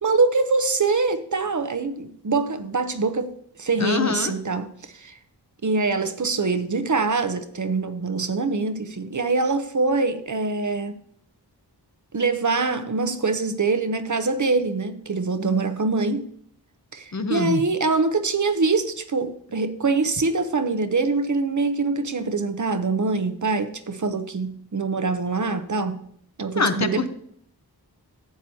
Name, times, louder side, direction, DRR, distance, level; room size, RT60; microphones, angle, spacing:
voice 1, 0.0-3.3 3.6-5.2 5.6-10.9 12.1-16.3 16.9-26.0 26.4-27.1, right 3 dB, 50° right, 0.7 m, -24 dB
voice 2, 3.8-4.3 17.1-17.6 26.5-27.1, left 4 dB, 45° left, 0.7 m, -24 dB
12.0 x 7.9 x 2.8 m
wide cardioid pair, 65°, 40 cm